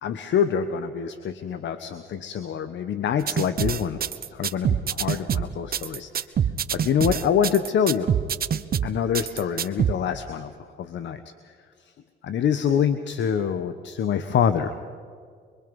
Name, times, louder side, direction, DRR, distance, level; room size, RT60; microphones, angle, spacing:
voice 1, 0.0-6.3 6.7-8.1 8.8-11.5 11.8-11.9 12.2-14.7, left 8 dB, 65° left, 10 dB, 1.2 m, -26 dB
sound 1, 3.3-9.9, right 8 dB, 50° right, 1.0 m, -25 dB
24.5 x 23.5 x 5.4 m, 2.1 s
cardioid pair, 90°, 20 cm